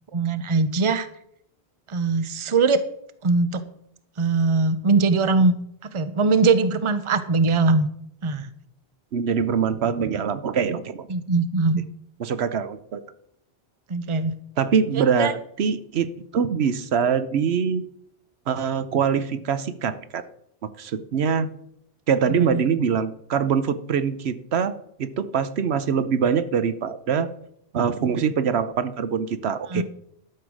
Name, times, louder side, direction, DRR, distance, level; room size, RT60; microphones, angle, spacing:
voice 1, 0.1-1.1 1.9-2.8 3.2-3.6 4.2-5.5 5.9-7.9 8.2-8.5 11.1-11.8 13.9-14.3 14.9-15.3 22.3-22.6 29.7-29.8, right 3 dB, 30° right, 12 dB, 0.7 m, -21 dB
voice 2, 9.1-11.1 12.2-13.0 14.6-17.8 18.5-20.2 20.8-21.5 22.1-27.3 27.7-29.8, right 7 dB, 75° right, 13 dB, 1.0 m, -24 dB
12.0 x 6.7 x 6.2 m, 0.72 s
omnidirectional pair, 1.1 m